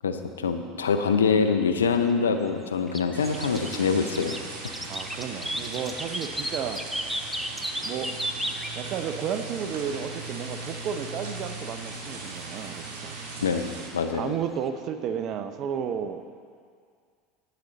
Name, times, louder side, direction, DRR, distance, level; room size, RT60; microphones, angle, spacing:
voice 1, 0.0-4.3 13.4-14.3, left 5 dB, 90° left, 8 dB, 0.6 m, -25 dB
sound 1, 2.0-14.7, equal, ahead, 0.7 m, -35 dB
sound 2, 3.1-13.9, right 3 dB, 70° right, 1.9 m, -38 dB
voice 2, 4.9-6.8 7.8-8.1 8.7-13.1 14.1-16.2, right 8 dB, 50° right, 9 dB, 0.7 m, -32 dB
11.0 x 9.7 x 4.0 m, 2.1 s
hypercardioid pair, 85°, 0 cm